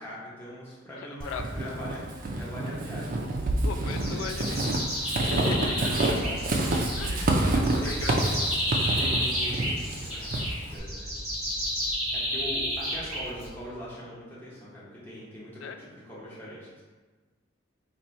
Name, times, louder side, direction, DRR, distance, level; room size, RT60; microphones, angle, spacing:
voice 1, 0.0-3.2 4.0-4.4 5.3-6.4 6.9-7.3 7.8-8.4 9.0-11.1 12.1-16.8, equal, 10° left, -9 dB, 1.0 m, -41 dB
voice 2, 1.0-1.5 3.6-4.6 5.2-5.8 7.0-7.1 7.5-8.2 15.6-15.8, left 6 dB, 70° left, 6 dB, 0.3 m, -37 dB
Walk footsteps / Squeak, 1.2-10.8, right 2 dB, 40° right, 0.4 m, -28 dB
sound 1, 3.9-13.7, equal, 5° right, 1.3 m, -31 dB
2.7 x 2.7 x 4.3 m, 1.4 s
head